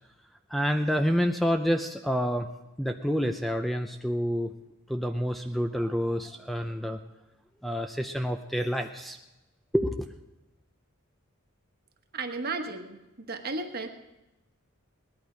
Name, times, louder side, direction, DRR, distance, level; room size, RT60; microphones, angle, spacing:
voice 1, 0.5-2.5 2.8-4.5 4.9-7.0 7.6-9.2 9.7-10.1, equal, ahead, 6 dB, 0.4 m, -28 dB
voice 2, 12.1-13.9, right 3 dB, 45° right, 5 dB, 1.3 m, -34 dB
18.5 x 11.0 x 5.1 m, 0.99 s
head